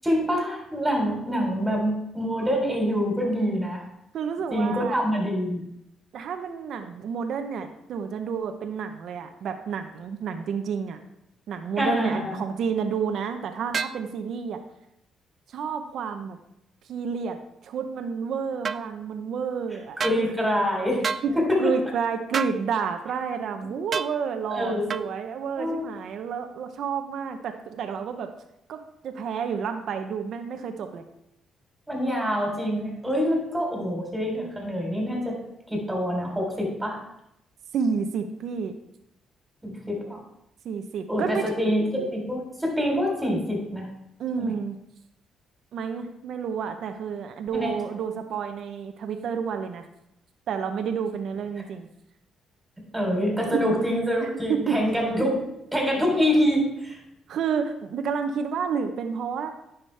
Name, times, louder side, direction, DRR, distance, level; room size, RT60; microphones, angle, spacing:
voice 1, 0.0-3.8 4.5-5.6 11.8-12.3 20.0-21.7 24.5-24.9 25.6-25.9 31.9-35.3 35.7-37.0 39.6-40.2 41.1-43.9 44.4-44.5 47.5-47.7 52.9-55.4 55.7-57.0, equal, 10° right, -1 dB, 3.4 m, -25 dB
voice 2, 4.1-5.0 6.1-11.0 11.5-14.6 15.5-16.4 16.9-20.0 21.2-21.3 21.6-28.3 28.7-31.0 37.7-38.7 40.6-41.4 44.2-44.8 45.7-49.9 50.5-51.9 53.5-53.6 54.5-54.8 57.3-59.5, right 6 dB, 70° right, 6 dB, 0.7 m, -30 dB
sound 1, 13.7-14.0 18.6-18.8 20.0-20.2 21.0-21.3 22.3-22.6 23.9-24.1 24.9-25.1, right 5 dB, 45° right, 0.3 m, -28 dB
10.0 x 5.9 x 3.3 m, 0.80 s
cardioid pair, 90°, 0 cm